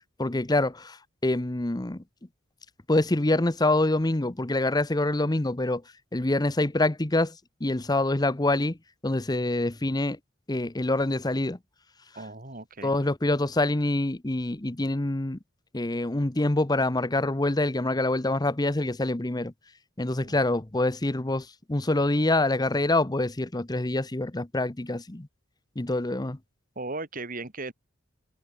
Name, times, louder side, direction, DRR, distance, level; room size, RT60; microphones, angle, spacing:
voice 1, 0.2-2.0 2.9-5.8 6.1-7.3 7.6-8.8 9.0-10.2 10.5-11.6 12.8-15.4 15.7-19.5 20.0-25.3 25.8-26.4, left 2 dB, 20° left, 0.9 m, -26 dB
voice 2, 12.2-12.9 20.2-20.4 26.8-27.7, right 2 dB, 45° right, 4.3 m, -37 dB
head